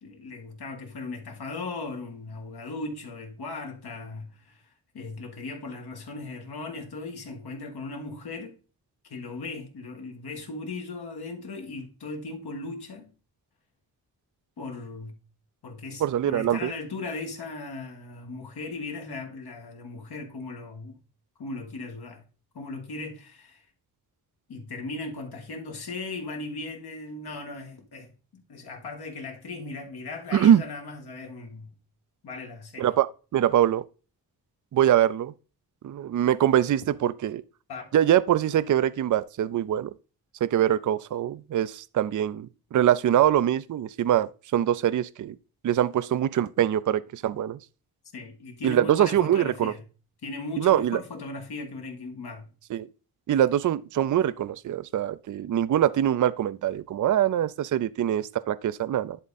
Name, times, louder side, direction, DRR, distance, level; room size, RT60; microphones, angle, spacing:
voice 1, 0.0-4.6 4.9-8.6 9.0-13.1 14.6-15.2 15.6-20.9 21.4-22.2 22.5-23.7 24.5-31.7 32.2-32.9 37.7-37.9 48.1-49.8 50.2-52.5, left 3 dB, 75° left, 2.0 m, -37 dB
voice 2, 16.0-16.7 30.3-30.6 32.8-33.1 33.3-33.8 34.7-35.3 35.8-37.4 37.9-39.9 40.4-45.3 45.6-47.6 48.6-49.7 50.6-51.0 52.7-52.9 53.3-59.2, right 11 dB, 50° right, 0.5 m, -23 dB
11.0 x 3.7 x 4.1 m
cardioid pair, 65°, 39 cm